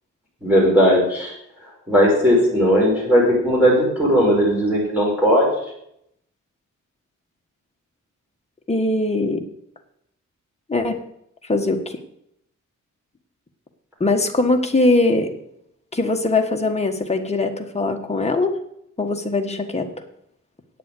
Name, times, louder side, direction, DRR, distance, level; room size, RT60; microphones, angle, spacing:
voice 1, 0.4-1.3 1.9-5.5, equal, 5° right, -5 dB, 4.7 m, -17 dB
voice 2, 8.7-9.4 10.7-11.0 11.5-12.0 14.0-15.3 15.9-18.5 19.0-19.9, left 2 dB, 20° left, 4 dB, 1.4 m, -21 dB
9.4 x 7.5 x 8.5 m, 0.76 s
wide cardioid pair, 125°, 32 cm